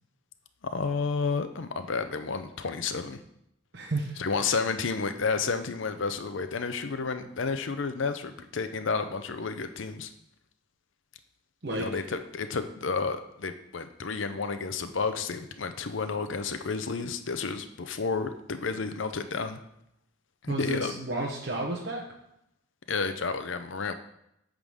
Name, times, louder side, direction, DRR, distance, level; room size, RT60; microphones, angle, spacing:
voice 1, 0.6-3.2 4.2-10.1 11.7-19.6 20.4-20.9 22.9-23.9, left 4 dB, 65° left, 9 dB, 0.6 m, -31 dB
voice 2, 3.7-4.2 11.6-11.9 20.5-22.0, right 2 dB, 55° right, -1 dB, 1.0 m, -32 dB
8.7 x 3.8 x 6.3 m, 0.80 s
head